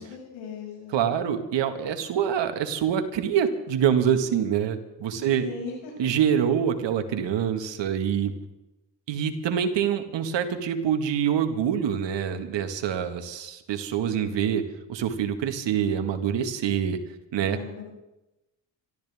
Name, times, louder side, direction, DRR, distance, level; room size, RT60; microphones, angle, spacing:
voice 1, 0.0-1.0 5.2-5.9 17.4-17.8, left 5 dB, 85° left, -2 dB, 6.8 m, -38 dB
voice 2, 0.9-5.5 6.0-8.3 9.1-14.6 14.9-17.0 17.3-17.6, right 8 dB, 65° right, 7 dB, 2.0 m, -25 dB
25.5 x 13.5 x 3.7 m, 0.98 s
supercardioid pair, 65°, 47 cm